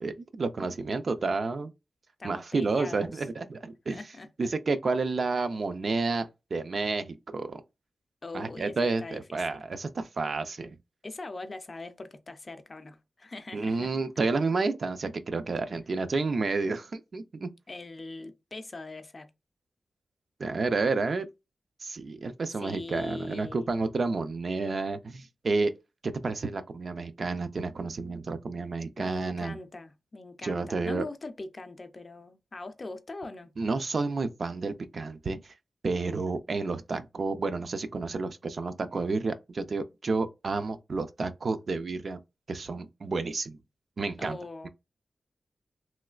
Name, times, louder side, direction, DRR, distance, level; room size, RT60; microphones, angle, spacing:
voice 1, 0.0-1.7 2.2-4.0 4.4-7.6 8.3-10.7 13.5-17.5 20.4-21.3 21.8-25.7 26.0-29.5 30.4-31.1 33.6-35.5 35.8-42.2 42.5-43.6 44.0-44.4, right 3 dB, 50° right, 0.3 m, -30 dB
voice 2, 2.2-3.2 3.9-4.5 8.2-9.6 11.0-13.9 17.7-19.3 22.6-23.8 29.0-33.5 44.2-44.7, left 2 dB, 35° left, 0.4 m, -41 dB
3.1 x 2.9 x 2.3 m
wide cardioid pair, 155°, 0 cm